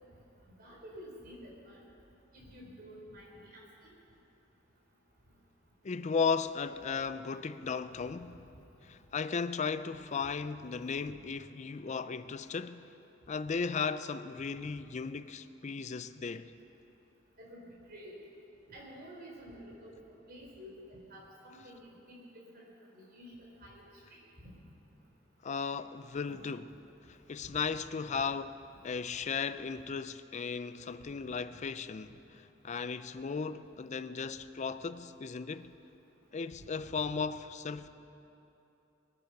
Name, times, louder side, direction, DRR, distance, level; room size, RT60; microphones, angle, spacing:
voice 1, 0.6-1.8 2.3-3.9 8.3-8.4 10.2-10.3 17.4-18.1 18.7-19.9 20.3-22.2 22.5-22.6 22.9-23.3 23.6-23.8 24.1-24.5 27.4-27.6 28.1-28.2 31.0-31.1 36.8-36.9, equal, 50° right, 4.0 m, -50 dB
voice 2, 5.8-8.4 8.8-12.9 13.3-16.5 25.4-26.6 27.1-28.6 28.8-32.1 32.6-35.7 36.3-37.9, left 5 dB, 35° left, 0.4 m, -36 dB
20.5 x 9.8 x 5.9 m
head